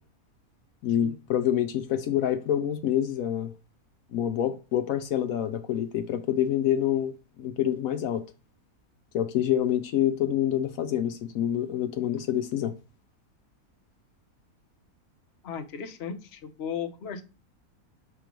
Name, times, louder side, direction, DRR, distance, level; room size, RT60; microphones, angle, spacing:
voice 1, 0.8-3.5 4.1-8.2 9.1-12.7, left 10 dB, 75° left, 1.1 m, -27 dB
voice 2, 15.4-17.2, left 7 dB, 55° left, 0.9 m, -36 dB
6.8 x 3.1 x 5.1 m
omnidirectional pair, 1.6 m